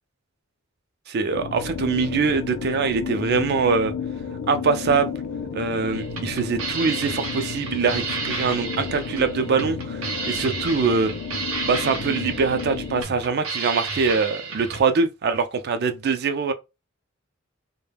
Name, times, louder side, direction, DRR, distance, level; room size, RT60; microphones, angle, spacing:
voice 1, 1.1-3.9 4.5-5.1 5.5-11.1 11.6-16.5, right 5 dB, 50° right, 0.4 m, -23 dB
sound 1, 1.3-13.0, left 6 dB, 80° left, 0.4 m, -32 dB
sound 2, 5.9-14.8, right 4 dB, 85° right, 0.7 m, -32 dB
2.2 x 2.1 x 3.2 m
head